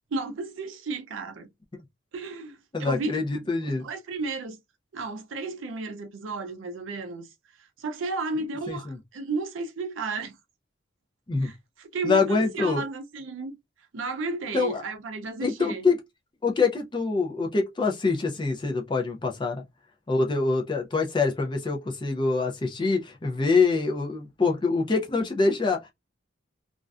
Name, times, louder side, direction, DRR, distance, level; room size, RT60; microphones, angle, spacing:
voice 1, 0.1-1.5 2.1-3.2 3.6-4.6 4.9-7.3 7.6-10.4 11.4-13.6 13.9-15.9, right 3 dB, 75° right, 0.5 m, -33 dB
voice 2, 2.7-3.8 8.7-9.0 11.3-11.5 12.0-12.8 14.5-14.8 15.4-16.0 16.4-19.6 20.1-25.9, left 4 dB, 25° left, 0.4 m, -25 dB
2.4 x 2.1 x 2.3 m
head